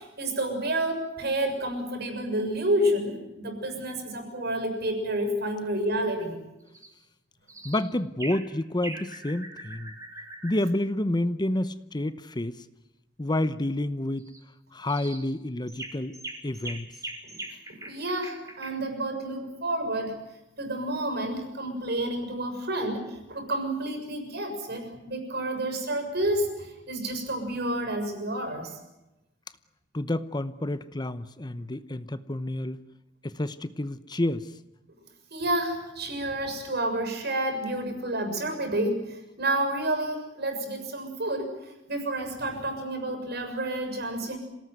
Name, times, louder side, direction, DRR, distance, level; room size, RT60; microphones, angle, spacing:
voice 1, 0.0-6.4 17.7-20.2 20.6-28.8 35.3-41.6 41.9-44.4, right 1 dB, 60° right, 6 dB, 6.9 m, -30 dB
sound 1, 6.7-6.9 7.5-7.8 8.2-8.5 8.8-10.6 14.2-14.4 14.9-15.2 15.7-18.7, right 2 dB, 15° right, 4.7 m, -41 dB
voice 2, 7.6-9.9 10.4-12.6 13.2-14.3 14.7-16.1 16.4-16.9 29.9-32.8 33.2-34.5, left 1 dB, 25° left, 13 dB, 0.9 m, -29 dB
27.0 x 18.0 x 9.5 m, 0.96 s
head